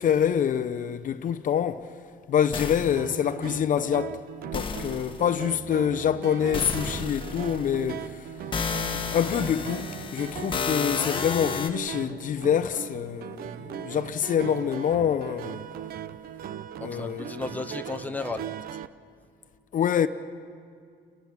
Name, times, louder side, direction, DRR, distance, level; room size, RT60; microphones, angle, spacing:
voice 1, 0.0-1.9 2.3-4.2 4.5-8.3 9.1-15.6 16.8-17.4 19.7-20.1, left 9 dB, 50° left, 0.8 m, -26 dB
sound 1, 2.5-3.1 4.5-5.3 6.5-7.9 8.5-11.7, left 5 dB, 30° left, 1.4 m, -32 dB
sound 2, 3.0-18.9, right 9 dB, 65° right, 0.8 m, -39 dB
voice 2, 16.7-18.5, left 3 dB, 10° left, 1.0 m, -34 dB
30.0 x 20.5 x 6.1 m
cardioid pair, 110°, 17 cm